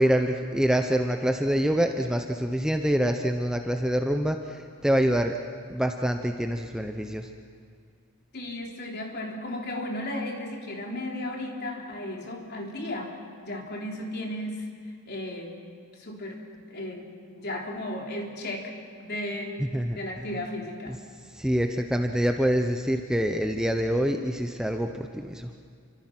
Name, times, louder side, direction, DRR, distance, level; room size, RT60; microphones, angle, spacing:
voice 1, 0.0-5.4 5.7-7.3 19.6-20.3 20.9-21.0 21.3-25.5, equal, 5° right, 4 dB, 0.8 m, -26 dB
voice 2, 8.3-13.1 13.4-14.6 15.1-15.5 16.0-16.4 16.7-17.1 17.4-18.7 19.0-19.6 20.0-21.0, left 1 dB, 45° left, 0 dB, 3.7 m, -34 dB
29.0 x 25.0 x 6.0 m, 2.2 s
head